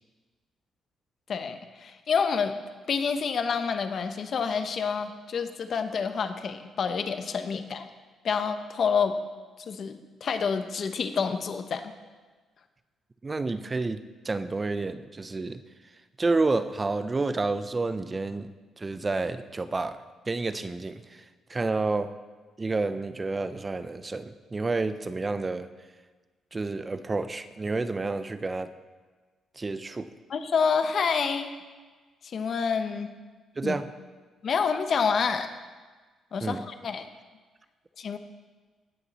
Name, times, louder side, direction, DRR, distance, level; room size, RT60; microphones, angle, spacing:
voice 1, 1.3-2.5 2.9-7.9 8.2-9.2 9.7-11.9 30.3-31.5 32.2-33.1 33.6-33.7 34.4-35.5 36.3-37.1 38.0-38.2, left 6 dB, 55° left, 9 dB, 0.9 m, -28 dB
voice 2, 13.2-15.6 16.2-18.5 18.8-20.0 20.3-21.2 21.5-22.1 22.6-25.7 26.5-28.7 29.6-30.1 33.6-33.9 36.4-36.6, right 3 dB, 25° right, 12 dB, 0.6 m, -29 dB
17.5 x 7.0 x 4.2 m, 1.3 s
cardioid pair, 90°, 0 cm